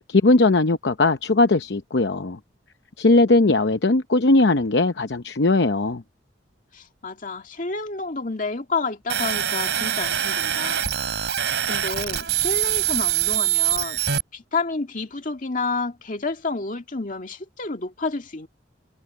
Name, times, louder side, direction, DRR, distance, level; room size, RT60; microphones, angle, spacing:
voice 1, 0.1-2.4 3.0-6.0, left 2 dB, 65° left, 0.8 m, -19 dB
voice 2, 6.7-10.9 11.2-11.3 11.7-18.5, left 3 dB, 45° left, 2.1 m, -30 dB
sound 1, 9.1-14.2, right 10 dB, 70° right, 4.8 m, -24 dB
head